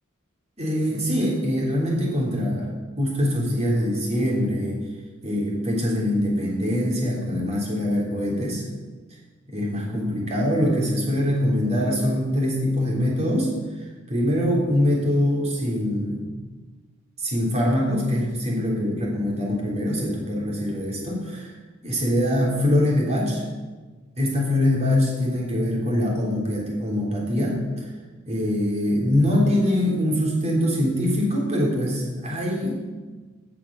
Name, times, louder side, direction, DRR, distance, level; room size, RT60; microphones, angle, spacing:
voice 1, 0.6-2.7 3.0-4.8 5.2-8.6 9.5-13.5 13.8-16.3 17.2-21.5 21.8-23.4 24.2-27.9 28.3-32.8, left 1 dB, 30° right, -3 dB, 3.2 m, -23 dB
16.0 x 5.8 x 6.1 m, 1.3 s
head